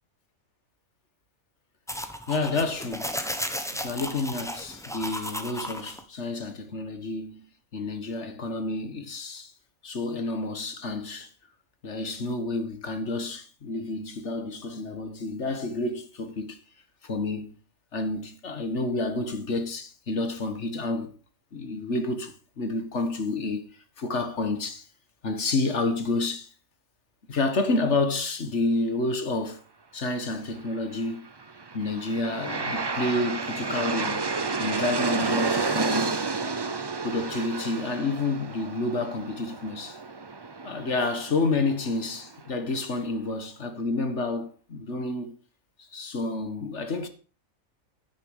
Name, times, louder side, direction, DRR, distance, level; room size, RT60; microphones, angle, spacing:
sound 1, 1.9-6.0, equal, ahead, 1.2 m, -34 dB
voice 1, 2.3-3.2 3.8-7.4 7.7-9.5 9.8-11.3 11.8-16.6 17.0-17.6 17.9-21.1 21.5-23.7 24.0-24.8 25.2-26.5 27.3-29.6 29.9-31.3 31.7-34.2 34.6-36.2 37.0-40.0 40.6-45.3 45.9-47.1, left 2 dB, 55° left, 1.8 m, -29 dB
Aircraft, 31.4-42.5, right 4 dB, 30° right, 0.5 m, -31 dB
10.5 x 9.5 x 5.2 m
omnidirectional pair, 1.4 m